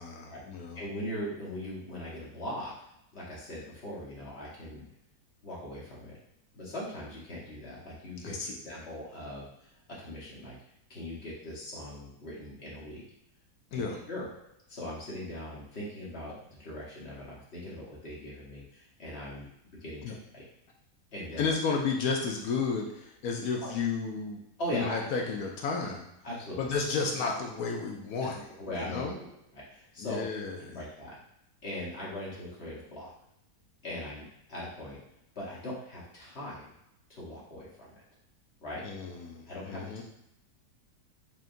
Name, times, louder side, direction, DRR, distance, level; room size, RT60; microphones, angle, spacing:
voice 1, 0.0-0.8 8.2-8.5 13.7-14.0 20.0-20.1 21.4-24.4 24.7-26.1 26.6-28.5 28.8-29.1 30.0-30.8 38.8-40.0, left 5 dB, 70° left, 0 dB, 1.0 m, -32 dB
voice 2, 0.7-2.7 3.1-4.9 5.4-6.2 6.5-10.5 10.9-13.0 13.7-14.3 14.7-19.5 19.8-20.5 21.1-21.5 23.6-23.7 24.6-25.0 26.2-26.7 28.6-29.1 29.5-30.2 30.7-31.1 31.6-33.1 33.8-35.0 35.3-36.6 37.1-37.9 38.6-38.9 39.5-40.0, left 1 dB, 45° left, -6 dB, 1.2 m, -40 dB
4.1 x 3.6 x 2.5 m, 0.80 s
omnidirectional pair, 1.8 m